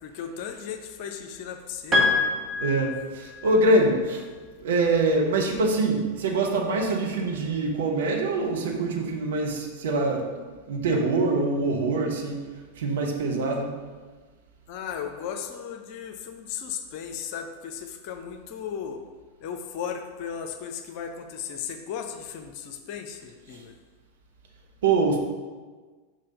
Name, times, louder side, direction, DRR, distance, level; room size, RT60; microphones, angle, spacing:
voice 1, 0.0-2.1 14.7-19.0 19.4-23.7, left 7 dB, 45° left, 5 dB, 0.7 m, -36 dB
Piano, 1.9-3.6, left 3 dB, 20° right, 1.6 m, -25 dB
voice 2, 2.6-4.2 4.6-10.3 10.7-12.4 12.8-13.7 23.5-23.6 24.8-25.2, right 2 dB, 60° right, 0 dB, 1.1 m, -24 dB
5.5 x 5.3 x 5.2 m, 1.4 s
figure-of-eight pair, 90°, 0 cm